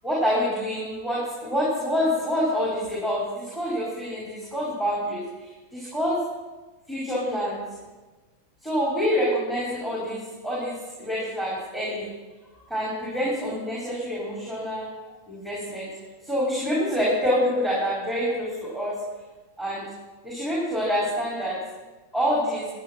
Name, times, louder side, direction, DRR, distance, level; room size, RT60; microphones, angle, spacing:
voice 1, 0.0-6.2 6.9-7.6 8.6-12.1 12.7-14.9 15.3-15.9 16.2-19.0 19.6-19.9 20.2-21.6 22.1-22.7, equal, 5° left, -7 dB, 5.0 m, -27 dB
12.0 x 9.5 x 6.1 m, 1.2 s
figure-of-eight pair, 90°, 0 cm